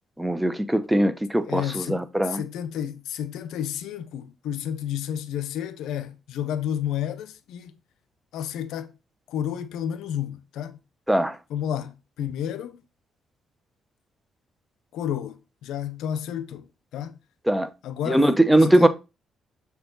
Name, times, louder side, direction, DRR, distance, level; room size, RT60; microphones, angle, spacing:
voice 1, 0.2-2.4 11.1-11.4 17.5-17.7 18.1-18.9, right 1 dB, 5° right, 0.8 m, -20 dB
voice 2, 1.5-7.7 8.3-8.9 9.3-10.8 11.5-12.8 14.9-17.2 17.8-18.9, left 9 dB, 85° left, 0.6 m, -31 dB
6.7 x 4.7 x 3.9 m
cardioid pair, 90°, 0 cm